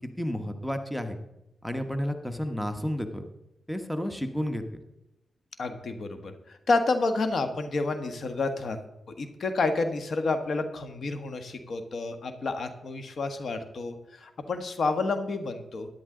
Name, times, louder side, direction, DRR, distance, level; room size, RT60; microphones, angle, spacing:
voice 1, 0.0-1.2 1.6-3.3 3.7-4.6, equal, 5° left, 7 dB, 1.2 m, -31 dB
voice 2, 5.6-8.8 9.2-15.9, left 3 dB, 65° left, 8 dB, 1.3 m, -29 dB
13.0 x 10.5 x 3.8 m, 0.89 s
cardioid pair, 70°, 0 cm